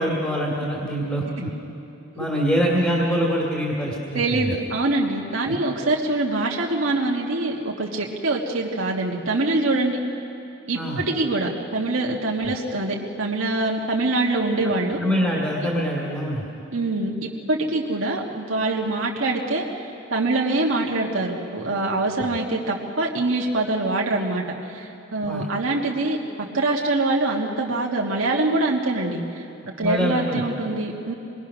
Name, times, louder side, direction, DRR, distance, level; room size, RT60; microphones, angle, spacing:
voice 1, 0.0-1.5 2.2-4.4 10.7-11.0 12.4-12.5 15.0-16.4 25.3-25.5 29.8-30.4, equal, 10° left, -4 dB, 2.5 m, -24 dB
voice 2, 4.1-10.0 10.7-15.0 16.7-19.6 20.1-26.2 26.5-29.2 29.8-31.1, right 2 dB, 75° right, -2 dB, 1.6 m, -24 dB
26.5 x 21.0 x 6.1 m, 2.8 s
head